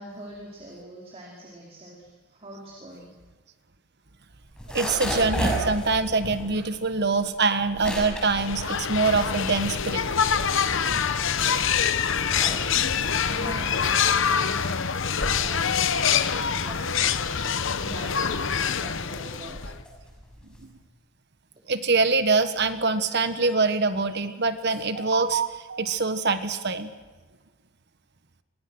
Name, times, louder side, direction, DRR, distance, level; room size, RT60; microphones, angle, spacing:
voice 1, 0.0-3.1 13.2-14.8 15.1-19.6, right 1 dB, 30° right, -2 dB, 4.3 m, -43 dB
sound 1, 4.4-9.7 10.1-11.5 12.0-20.8, equal, 5° left, 6.2 m, -34 dB
voice 2, 4.7-10.1 20.6-20.7 21.7-26.9, right 3 dB, 50° right, 10 dB, 1.5 m, -24 dB
sound 2, 8.2-19.8, left 7 dB, 60° left, 1.0 m, -25 dB
28.5 x 24.5 x 6.3 m, 1.3 s
head